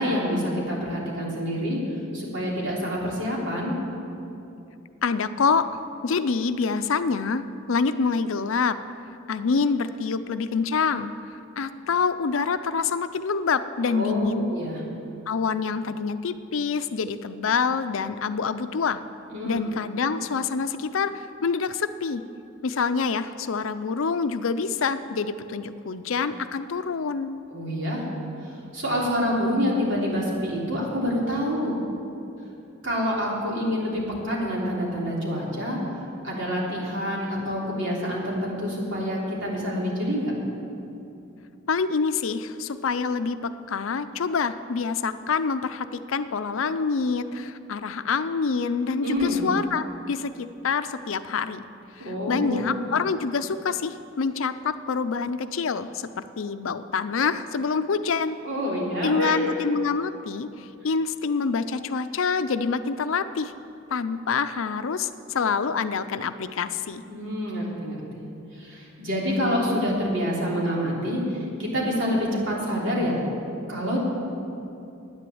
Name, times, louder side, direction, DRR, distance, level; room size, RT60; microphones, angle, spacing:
voice 1, 0.0-1.8 2.1-3.8 13.9-14.8 19.3-19.6 27.5-28.1 28.7-31.7 32.8-35.8 36.2-40.3 49.0-49.4 52.0-52.7 58.4-59.3 67.0-68.3 68.6-73.2 73.7-74.0, equal, 65° right, -4 dB, 3.4 m, -27 dB
voice 2, 5.0-5.7 6.0-8.8 9.3-11.1 11.6-14.5 15.3-19.0 19.4-22.2 22.6-27.4 41.7-51.6 52.0-56.1 56.4-58.4 59.0-63.5 63.9-67.0, left 5 dB, 75° left, 11 dB, 0.5 m, -26 dB
10.5 x 9.8 x 7.8 m, 2.7 s
head